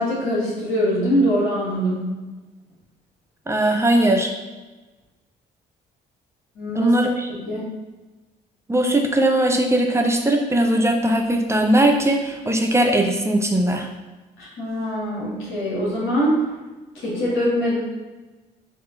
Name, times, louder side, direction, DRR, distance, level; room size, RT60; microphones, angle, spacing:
voice 1, 0.0-2.1 6.6-6.9 7.3-7.7 14.4-16.4 16.9-17.8, equal, 70° left, -8 dB, 1.5 m, -23 dB
voice 2, 3.5-4.3 6.7-7.3 8.7-13.9, right 1 dB, 15° right, 2 dB, 0.6 m, -19 dB
4.5 x 2.8 x 2.5 m, 1.2 s
hypercardioid pair, 50°, 21 cm